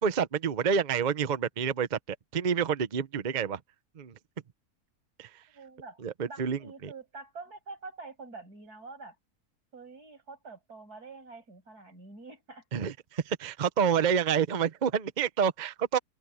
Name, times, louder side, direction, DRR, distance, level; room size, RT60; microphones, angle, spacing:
voice 1, 0.0-3.6 4.0-4.1 5.2-5.4 6.0-6.9 12.7-16.0, right 7 dB, 40° right, 0.8 m, -28 dB
voice 2, 5.5-6.0 6.3-9.2 9.7-12.6, right 3 dB, 85° right, 7.6 m, -46 dB
open air
omnidirectional pair, 1.6 m